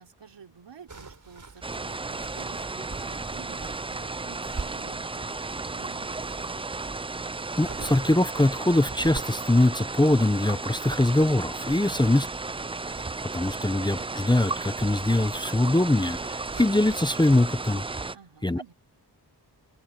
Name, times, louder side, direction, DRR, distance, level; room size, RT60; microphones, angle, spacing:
voice 1, 0.0-6.9 18.1-18.7, right 7 dB, 85° right, 4.0 m, -51 dB
sound 1, 0.9-17.7, right 4 dB, 45° right, 5.0 m, -45 dB
sound 2, 1.6-18.2, right 3 dB, 15° right, 0.4 m, -34 dB
voice 2, 7.6-12.3 12.9-13.0 13.2-17.8 18.4-18.7, left 1 dB, 10° left, 0.7 m, -23 dB
wide cardioid pair, 80°, 42 cm